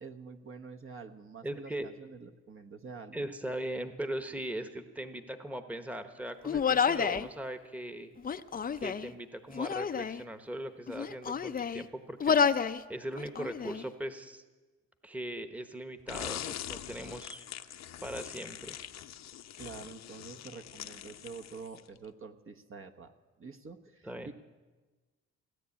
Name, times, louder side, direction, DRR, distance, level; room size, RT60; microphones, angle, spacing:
voice 1, 0.0-3.3 19.5-23.1 23.4-24.3, right 5 dB, 45° right, 5 dB, 1.1 m, -47 dB
voice 2, 1.4-1.9 3.1-8.2 8.8-14.4 15.0-17.5 18.0-18.8 24.0-24.3, right 1 dB, 5° right, 9 dB, 1.1 m, -39 dB
Human voice, 6.4-7.3 8.2-9.1 9.5-10.2 10.9-11.8 12.2-12.8 13.2-13.8, left 6 dB, 30° left, 0.5 m, -29 dB
sound 1, 16.1-22.0, left 10 dB, 60° left, 0.8 m, -43 dB
17.0 x 9.9 x 8.5 m, 1.3 s
cardioid pair, 90°, 30 cm